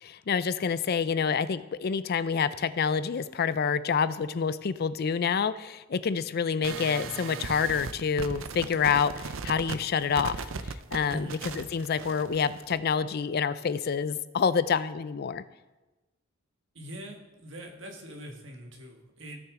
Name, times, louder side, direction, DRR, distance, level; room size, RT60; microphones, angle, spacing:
voice 1, 0.0-11.3 11.6-15.4, left 6 dB, 55° left, 15 dB, 0.4 m, -28 dB
sound 1, 6.6-12.8, right 5 dB, 85° right, 0.5 m, -38 dB
voice 2, 11.1-11.4 16.7-19.4, equal, 70° right, 2 dB, 1.7 m, -43 dB
15.5 x 6.2 x 3.7 m, 1.1 s
head